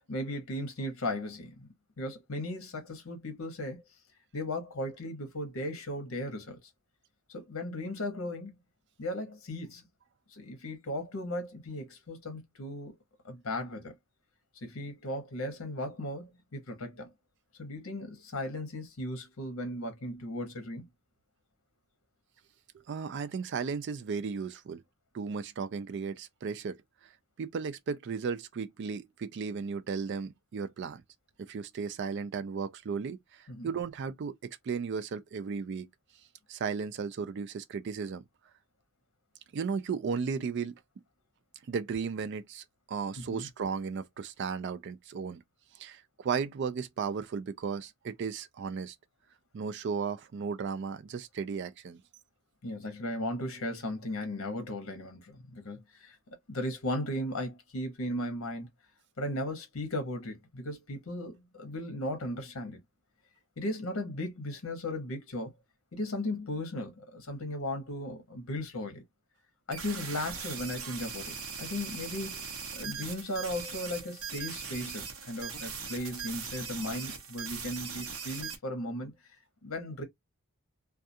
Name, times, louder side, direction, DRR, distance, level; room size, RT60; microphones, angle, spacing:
voice 1, 0.1-1.7 2.0-3.8 4.3-6.6 7.3-8.5 9.0-9.8 10.3-12.9 13.2-13.9 14.6-17.1 17.6-20.8 33.5-33.7 43.2-43.5 52.6-56.2 56.5-58.7 59.2-62.8 63.6-65.5 65.9-69.0 69.7-72.5 72.7-79.1 79.6-80.0, left 1 dB, 65° left, 0.8 m, -36 dB
voice 2, 22.9-24.8 25.1-26.8 27.4-31.0 31.5-35.9 36.5-38.2 39.5-40.7 41.7-45.4 45.8-49.0 49.5-52.0, right 5 dB, 50° right, 0.3 m, -35 dB
sound 1, 69.7-78.6, right 6 dB, 70° right, 0.8 m, -40 dB
2.3 x 2.3 x 2.6 m
head